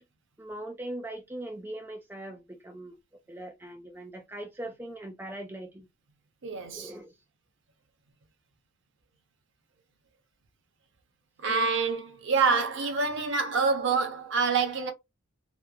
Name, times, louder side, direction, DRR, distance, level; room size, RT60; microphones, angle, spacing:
voice 1, 0.4-2.9 3.3-5.9 6.7-7.2 11.5-11.7, right 1 dB, 10° right, 0.3 m, -40 dB
voice 2, 6.4-6.9 11.4-14.9, right 4 dB, 60° right, 0.6 m, -26 dB
2.8 x 2.3 x 2.3 m
head